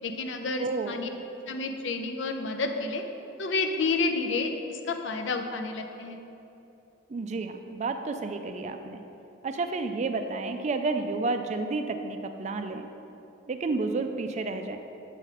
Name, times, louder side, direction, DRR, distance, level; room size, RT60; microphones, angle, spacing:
voice 1, 0.0-1.1 1.5-3.0 3.4-6.2, left 3 dB, 70° left, 6 dB, 0.6 m, -30 dB
voice 2, 0.6-1.0 7.1-9.0 9.4-12.9 13.5-14.8, right 3 dB, 35° right, 7 dB, 0.4 m, -31 dB
7.5 x 4.9 x 4.1 m, 2.9 s
head